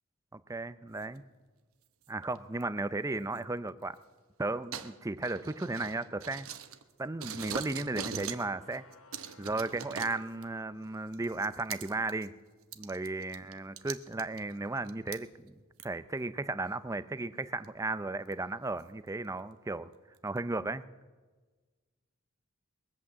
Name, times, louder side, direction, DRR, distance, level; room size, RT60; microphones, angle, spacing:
voice 1, 0.3-1.2 2.1-4.0 4.4-6.5 7.0-8.8 9.4-12.3 12.8-15.5 15.8-19.9 20.2-20.8, right 2 dB, 15° right, 14 dB, 0.5 m, -35 dB
sound 1, 1.0-1.2 2.1-2.6 3.4-3.5 4.7-6.9 7.2-8.5 8.7-10.5 11.1-12.3 12.6-15.2 15.8-15.9 16.4-16.5 17.6-17.7 18.3-18.4 18.8-18.9 19.4-19.5 19.9-20.4, right 7 dB, 85° right, 1.0 m, -42 dB
sound 2, 8.5-11.4, left 3 dB, 75° left, 1.0 m, -60 dB
21.0 x 8.5 x 7.5 m, 1.3 s
head